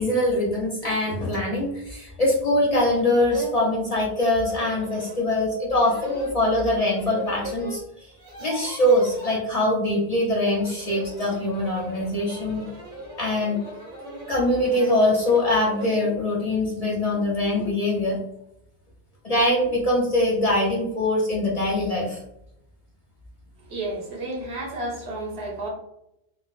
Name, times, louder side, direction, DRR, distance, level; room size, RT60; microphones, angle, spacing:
voice 1, 0.0-7.8 8.4-12.7 13.2-13.6 14.3-18.2 19.2-22.2, left 1 dB, 45° left, -4 dB, 0.6 m, -23 dB
sound 1, 1.3-1.4 1.9-2.0 2.6-2.7 2.9-3.6 4.5-5.2 5.7-7.8 8.1-9.4 10.4-16.1, right 1 dB, 45° right, 1.6 m, -38 dB
voice 2, 23.6-25.7, right 2 dB, 75° right, -2 dB, 1.2 m, -32 dB
3.9 x 2.2 x 2.3 m, 0.82 s
omnidirectional pair, 1.1 m